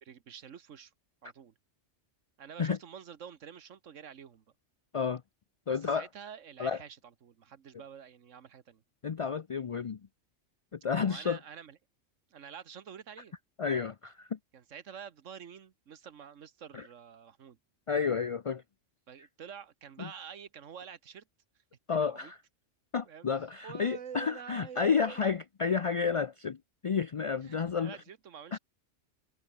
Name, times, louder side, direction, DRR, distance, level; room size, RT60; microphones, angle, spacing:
voice 1, 0.0-0.9 1.2-1.5 2.4-4.4 5.7-8.8 11.0-11.8 12.3-13.3 14.5-17.6 19.1-21.2 21.9-22.3 23.1-23.3 23.6-25.2 27.4-28.6, right 8 dB, 80° right, 1.5 m, -48 dB
voice 2, 5.7-6.1 6.6-6.8 9.0-10.0 10.7-11.4 13.6-14.4 16.7-16.9 17.9-18.6 19.2-19.3 20.0-20.1 21.9-22.4 22.9-26.6 26.8-28.0 28.5-28.6, left 6 dB, 50° left, 0.4 m, -31 dB
omnidirectional pair, 1.3 m